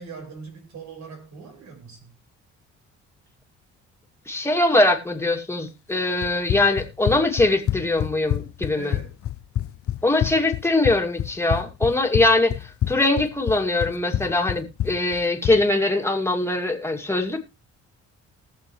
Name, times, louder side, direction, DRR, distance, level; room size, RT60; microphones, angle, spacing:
voice 1, 0.0-2.1 8.7-9.2, right 5 dB, 65° right, 5.1 m, -41 dB
voice 2, 4.3-8.9 10.0-17.4, left 2 dB, 10° left, 2.4 m, -22 dB
Run, 6.2-15.6, left 12 dB, 50° left, 0.5 m, -28 dB
20.0 x 7.1 x 3.2 m
cardioid pair, 90°, 30 cm